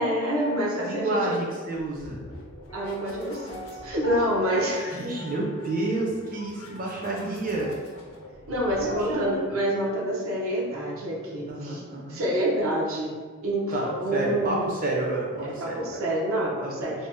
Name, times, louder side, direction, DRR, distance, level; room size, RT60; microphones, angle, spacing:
voice 1, 0.0-1.4 2.7-5.2 8.5-11.8 12.1-14.7 15.4-16.9, right 1 dB, 75° right, -3 dB, 0.7 m, -27 dB
voice 2, 0.8-2.2 4.9-7.7 8.8-9.5 11.5-12.2 13.7-16.0 16.6-16.7, right 2 dB, 40° right, -2 dB, 0.5 m, -30 dB
sound 1, 1.7-9.4, left 1 dB, 75° left, 0.7 m, -46 dB
Piano, 2.7-6.5 6.7-6.8, left 5 dB, 20° left, 0.4 m, -41 dB
2.7 x 2.0 x 3.4 m, 1.5 s
head